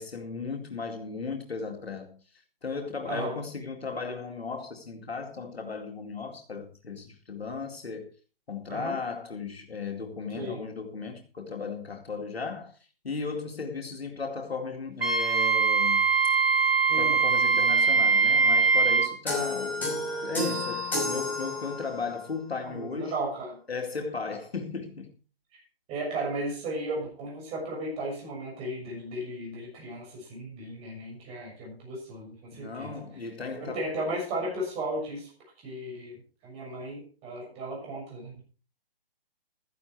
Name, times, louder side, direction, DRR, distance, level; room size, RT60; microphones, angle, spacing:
voice 1, 0.0-2.2 2.6-8.1 8.5-12.7 13.0-16.1 16.9-20.0 20.2-23.1 23.7-25.1 32.5-33.9, left 4 dB, 85° left, 2.3 m, -36 dB
voice 2, 3.1-3.4 8.7-8.9 10.3-10.6 16.9-17.2 22.6-23.6 25.9-32.9 33.5-35.3 35.6-38.4, right 1 dB, 20° right, 6.5 m, -35 dB
Wind instrument woodwind instrument, 15.0-19.1, right 4 dB, 75° right, 2.8 m, -22 dB
sound 1, 19.3-22.1, left 2 dB, 5° left, 5.9 m, -31 dB
13.5 x 11.0 x 4.7 m
hypercardioid pair, 145°, 30 cm